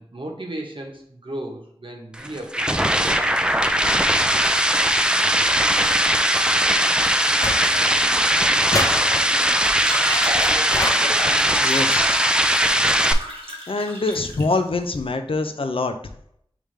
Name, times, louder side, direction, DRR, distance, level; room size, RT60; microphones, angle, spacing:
voice 1, 0.0-3.5 6.4-6.6, right 1 dB, 65° right, 1 dB, 1.0 m, -36 dB
sound 1, 2.1-13.1, right 1 dB, 10° right, 0.4 m, -19 dB
sound 2, 7.4-8.2 8.7-9.6 10.7-11.5, left 1 dB, 35° left, 0.7 m, -28 dB
sound 3, 9.6-14.5, right 1 dB, 85° right, 1.1 m, -32 dB
voice 2, 11.6-12.7 13.7-15.9, left 3 dB, 70° left, 7 dB, 0.5 m, -25 dB
5.0 x 3.3 x 3.2 m, 0.69 s
wide cardioid pair, 40°, 10 cm